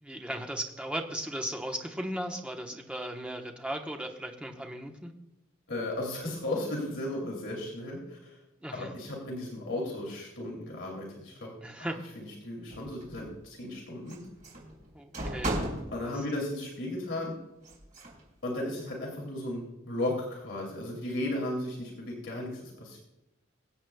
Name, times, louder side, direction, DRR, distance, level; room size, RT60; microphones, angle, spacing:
voice 1, 0.0-5.1 8.6-8.9 11.6-12.0 14.9-15.6 16.0-16.1, right 1 dB, 5° right, 2 dB, 1.0 m, -36 dB
voice 2, 5.7-8.4 8.7-11.5 11.8-14.2 15.9-17.3 18.4-23.0, left 1 dB, 70° left, -1 dB, 2.6 m, -35 dB
sound 1, 12.7-13.3 14.1-16.0 17.6-18.2, right 1 dB, 40° right, 4.2 m, -35 dB
23.5 x 8.2 x 2.3 m, 0.96 s
head